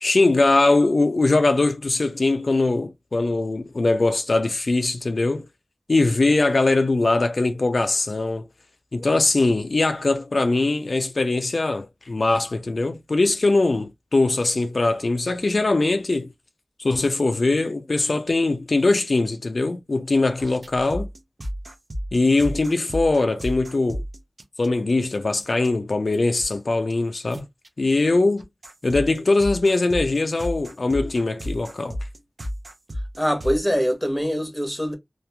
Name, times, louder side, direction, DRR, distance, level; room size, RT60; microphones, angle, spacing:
voice 1, 0.0-5.5 5.9-8.5 8.9-16.3 16.8-21.1 22.1-24.0 24.6-27.4 27.8-28.5 28.8-32.0, left 2 dB, 70° left, 0.3 m, -21 dB
sound 1, 20.4-24.9 25.4-25.7 26.1-26.6 26.9-27.0 27.3-27.7 28.4-33.6, equal, 60° right, 0.5 m, -32 dB
voice 2, 33.2-34.9, equal, ahead, 0.8 m, -23 dB
2.9 x 2.4 x 2.2 m
wide cardioid pair, 65°, 0 cm